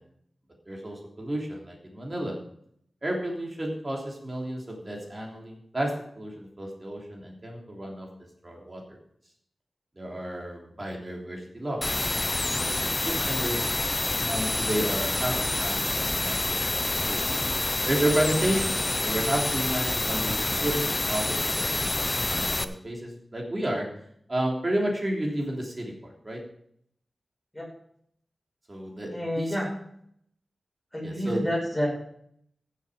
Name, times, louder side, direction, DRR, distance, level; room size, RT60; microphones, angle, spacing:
voice 1, 0.7-2.4 3.0-8.1 8.4-9.0 10.0-12.2 12.5-13.6 14.2-17.2 17.9-23.9 24.3-25.9 26.2-26.4 28.7-29.5 31.0-31.4, right 1 dB, 30° right, -1 dB, 3.3 m, -31 dB
sound 1, 11.8-22.6, left 2 dB, 30° left, 0.7 m, -27 dB
voice 2, 29.1-29.7 30.9-31.9, equal, 10° left, -2 dB, 5.6 m, -29 dB
15.0 x 7.4 x 5.1 m, 0.69 s
wide cardioid pair, 110°, 0 cm